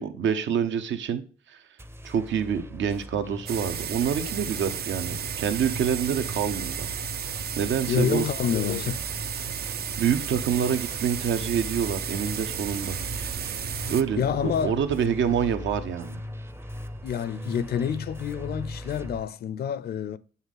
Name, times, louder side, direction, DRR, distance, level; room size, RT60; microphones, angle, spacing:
voice 1, 0.0-1.6 2.0-6.9 7.6-8.3 10.0-13.0 13.9-16.2, right 8 dB, 70° right, 1.0 m, -27 dB
sound 1, 1.8-19.2, left 1 dB, 10° right, 0.6 m, -39 dB
sound 2, 3.5-14.0, right 8 dB, 50° right, 0.5 m, -33 dB
voice 2, 7.9-9.0 14.2-14.8 17.0-20.2, left 8 dB, 55° left, 0.5 m, -28 dB
7.4 x 5.6 x 3.9 m
cardioid pair, 90°, 20 cm